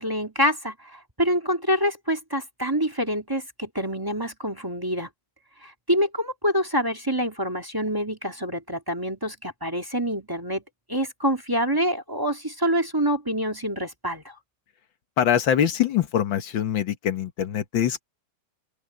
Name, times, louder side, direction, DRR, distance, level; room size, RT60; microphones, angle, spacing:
voice 1, 0.0-5.1 5.6-10.6 10.9-14.3, equal, 10° right, 2.1 m, -26 dB
voice 2, 15.2-18.0, left 9 dB, 85° left, 2.0 m, -23 dB
open air
omnidirectional pair, 2.0 m